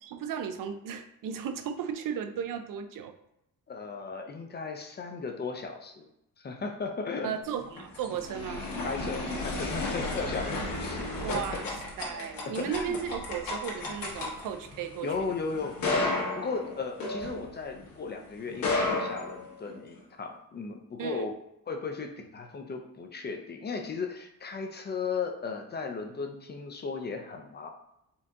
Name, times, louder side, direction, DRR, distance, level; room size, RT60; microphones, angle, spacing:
voice 1, 0.0-3.2 7.2-8.7 11.2-11.6 12.0-15.1 21.0-21.3, right 8 dB, 65° right, 8 dB, 0.5 m, -35 dB
voice 2, 3.7-6.1 6.4-7.3 8.8-11.1 11.3-11.7 12.4-13.0 15.0-16.1 16.4-21.3 21.7-27.7, left 4 dB, 30° left, 3 dB, 0.5 m, -36 dB
sound 1, 7.5-17.9 18.5-20.0, left 2 dB, 70° left, 1.3 m, -33 dB
4.4 x 2.7 x 3.6 m, 0.82 s
cardioid pair, 135°, 36 cm